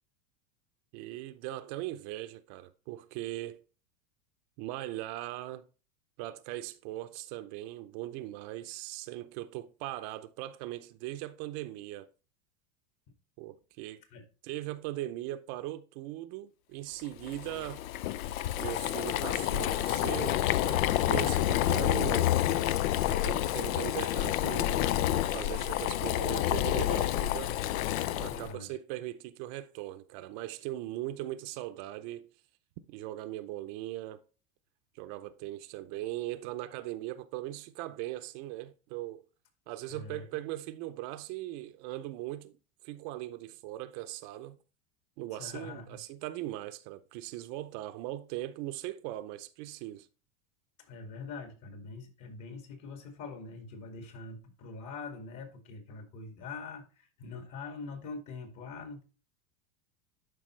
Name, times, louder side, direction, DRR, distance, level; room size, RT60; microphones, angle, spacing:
voice 1, 0.9-3.6 4.6-5.7 6.2-12.1 13.4-14.0 14.4-17.8 18.6-22.3 23.1-24.7 25.1-27.6 28.2-32.3 32.9-34.2 35.0-39.2 39.7-42.5 42.8-44.6 45.2-50.1, right 15 dB, 50° right, 0.6 m, -39 dB
Boiling, 17.2-28.5, left 13 dB, 80° left, 0.6 m, -29 dB
voice 2, 28.3-28.7 39.9-40.3 45.3-46.0 50.8-59.0, left 4 dB, 45° left, 2.3 m, -44 dB
11.5 x 4.9 x 3.2 m
supercardioid pair, 130°, 40 cm